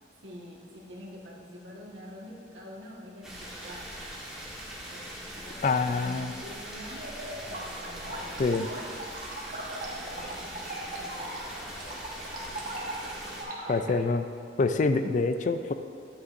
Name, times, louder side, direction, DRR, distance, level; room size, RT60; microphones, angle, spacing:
voice 1, 0.2-3.9 4.9-7.1 7.5-9.0 9.9-12.2 12.5-13.4, left 1 dB, 90° right, -3 dB, 1.5 m, -47 dB
sound 1, 3.2-13.4, right 1 dB, 5° right, 1.3 m, -41 dB
voice 2, 5.6-6.3 8.4-8.7 13.7-14.3 14.6-15.7, left 3 dB, 45° left, 9 dB, 0.3 m, -26 dB
sound 2, 6.9-13.9, right 1 dB, 45° right, 1.2 m, -39 dB
9.6 x 8.5 x 2.6 m, 2.4 s
head